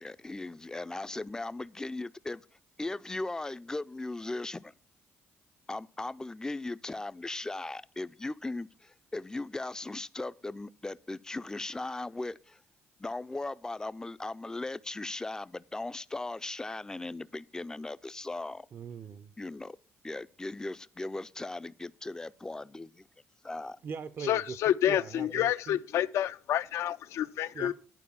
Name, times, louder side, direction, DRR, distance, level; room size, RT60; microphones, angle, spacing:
voice 1, 0.0-2.5 2.8-4.7 5.7-12.6 13.0-18.7 19.4-19.8 20.0-23.0 23.4-23.8, left 2 dB, 15° left, 0.4 m, -38 dB
voice 2, 18.7-19.3 23.8-25.8 27.5-27.7, right 6 dB, 45° right, 0.5 m, -41 dB
voice 3, 24.2-27.7, left 11 dB, 70° left, 0.4 m, -29 dB
11.0 x 4.5 x 6.9 m
cardioid pair, 100°, 5 cm